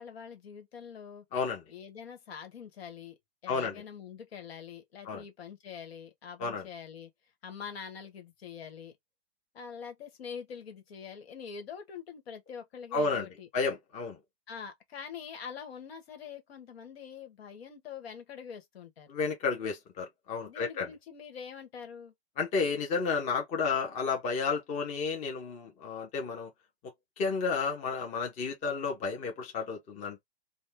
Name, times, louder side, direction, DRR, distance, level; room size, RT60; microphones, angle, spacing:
voice 1, 0.0-1.2 1.7-7.1 7.4-8.9 9.5-13.5 14.5-19.1 20.4-22.1, left 7 dB, 65° left, 1.6 m, -44 dB
voice 2, 1.3-1.6 3.5-3.8 5.0-5.2 6.4-6.7 12.9-13.3 13.5-14.2 19.1-20.9 22.4-26.5 27.2-30.2, left 4 dB, 20° left, 0.9 m, -32 dB
4.1 x 2.3 x 3.5 m
hypercardioid pair, 145°, 32 cm